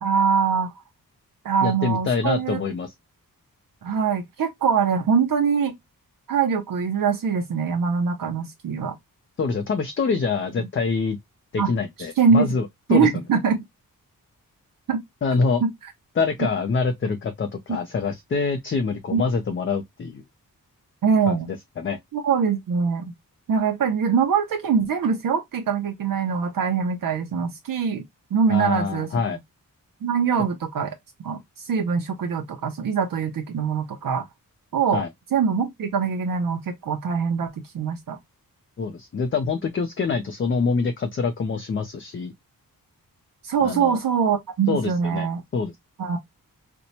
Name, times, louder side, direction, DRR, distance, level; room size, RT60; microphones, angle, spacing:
voice 1, 0.0-0.7 1.4-2.6 3.8-5.7 6.3-8.9 11.6-11.7 12.0-12.5 12.9-13.6 14.9-15.0 15.6-15.9 19.1-19.2 21.0-21.5 22.1-23.1 23.5-28.0 28.3-29.1 30.0-31.0 31.2-34.3 34.7-35.0 35.3-38.2 43.4-45.4 46.0-46.2, right 6 dB, 70° right, 0.6 m, -23 dB
voice 2, 1.6-2.9 9.4-11.2 11.5-13.1 15.2-15.6 16.2-20.2 21.3-21.4 21.8-22.0 28.5-29.4 34.9-35.1 38.8-42.3 43.6-44.0 44.7-45.3 45.5-45.8, left 4 dB, 35° left, 0.4 m, -25 dB
4.3 x 2.1 x 2.7 m
wide cardioid pair, 155°, 35 cm